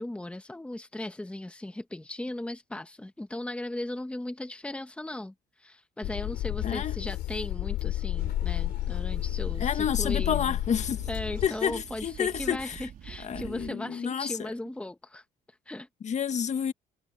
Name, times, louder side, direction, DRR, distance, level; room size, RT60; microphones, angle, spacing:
voice 1, 0.0-10.6 11.1-15.2 15.7-15.9, left 1 dB, 5° left, 1.2 m, -37 dB
sound 1, 6.0-11.5, left 15 dB, 80° left, 3.0 m, -31 dB
voice 2, 6.6-6.9 9.6-11.0 11.4-12.7 13.2-14.5 16.0-16.7, left 8 dB, 45° left, 1.7 m, -29 dB
sound 2, 8.2-13.7, right 9 dB, 55° right, 4.1 m, -46 dB
cardioid pair, 110°, 17 cm